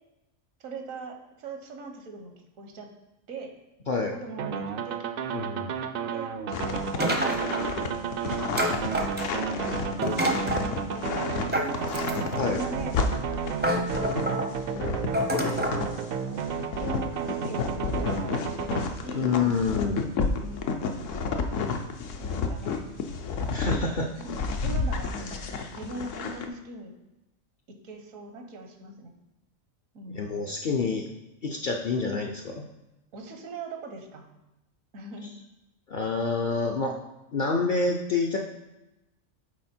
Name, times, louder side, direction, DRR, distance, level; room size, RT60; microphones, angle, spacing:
voice 1, 0.6-2.3 2.6-2.9 3.3-3.5 4.1-5.1 6.1-8.2 9.5-12.0 12.5-13.5 15.4-16.1 16.8-19.4 20.3-21.9 22.2-22.9 24.0-26.9 27.8-29.1 29.9-30.5 33.1-34.3 34.9-35.3, right 2 dB, 85° right, 4 dB, 1.4 m, -41 dB
sound 1, 4.4-18.8, right 7 dB, 65° right, 0.6 m, -32 dB
voice 2, 5.3-5.7 12.4-12.6 19.1-20.1 23.5-24.1 30.1-31.1 31.4-32.6 35.9-37.0 37.3-38.4, left 4 dB, 55° left, 1 dB, 0.5 m, -27 dB
sound 2, 6.5-16.0 16.4-23.8 24.2-26.5, left 4 dB, 75° left, 1.0 m, -31 dB
sound 3, 7.0-7.8 8.6-9.5 10.0-10.7 11.5-12.4 13.1-13.2 13.6-14.5 15.1-15.8, equal, 15° right, 0.4 m, -28 dB
7.4 x 4.2 x 4.3 m, 0.96 s
omnidirectional pair, 1.4 m